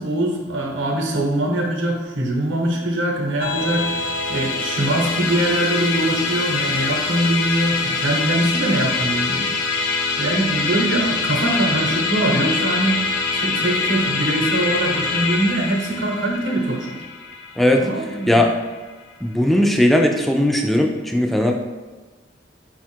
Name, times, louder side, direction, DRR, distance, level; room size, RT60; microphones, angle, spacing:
voice 1, 0.0-9.5 10.2-13.0 13.3-17.0 17.8-18.4, right 1 dB, 85° right, 1 dB, 0.8 m, -22 dB
Musical instrument, 3.4-18.9, left 3 dB, 75° left, 0.4 m, -24 dB
voice 2, 17.6-18.5 19.2-21.5, left 1 dB, ahead, 2 dB, 0.3 m, -18 dB
4.3 x 2.4 x 4.4 m, 1.3 s
head